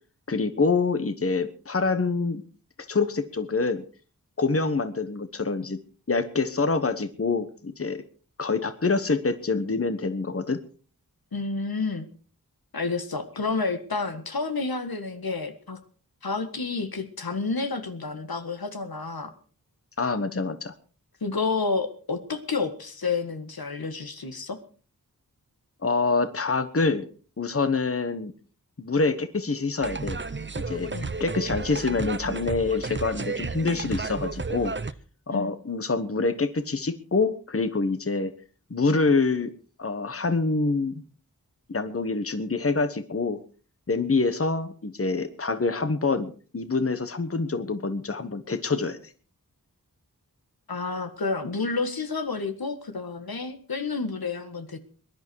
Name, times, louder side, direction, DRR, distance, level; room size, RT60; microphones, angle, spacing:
voice 1, 0.3-2.4 2.9-3.8 4.4-5.8 6.1-8.0 8.4-10.6 20.0-20.7 25.8-27.1 27.4-28.3 28.8-30.2 30.6-30.9 31.2-34.7 35.3-38.3 38.7-39.5 39.8-41.0 41.7-43.4 43.9-49.0, left 3 dB, 40° left, 10 dB, 1.2 m, -26 dB
voice 2, 11.3-12.1 12.7-15.8 16.2-19.3 21.2-24.6 30.9-31.1 35.3-35.5 50.7-54.9, left 4 dB, 85° left, 8 dB, 1.8 m, -30 dB
sound 1, 29.8-34.9, right 4 dB, 30° right, 0.8 m, -32 dB
22.0 x 11.0 x 4.7 m, 0.40 s
wide cardioid pair, 60°, 36 cm